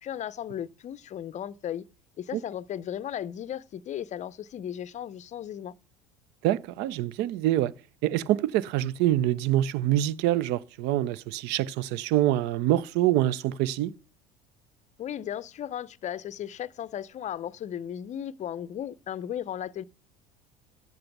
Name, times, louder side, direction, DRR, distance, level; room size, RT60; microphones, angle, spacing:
voice 1, 0.0-1.8 2.2-5.7 15.0-19.8, left 10 dB, 35° left, 0.5 m, -35 dB
voice 2, 6.4-7.7 8.0-13.9, right 13 dB, 60° right, 0.5 m, -25 dB
12.0 x 7.7 x 5.9 m
hypercardioid pair, 75°, 20 cm